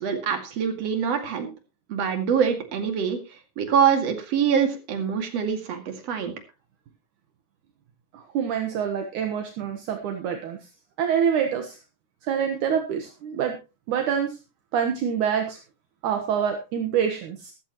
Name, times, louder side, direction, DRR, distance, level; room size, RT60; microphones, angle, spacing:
voice 1, 0.0-1.5 1.9-3.2 3.6-6.3, right 7 dB, 50° right, 5 dB, 3.2 m, -24 dB
voice 2, 8.1-10.7 11.0-11.8 12.2-13.6 13.9-14.4 14.7-15.6 16.0-17.5, right 8 dB, 70° right, 5 dB, 2.7 m, -26 dB
14.5 x 13.5 x 3.0 m, 0.29 s
omnidirectional pair, 3.9 m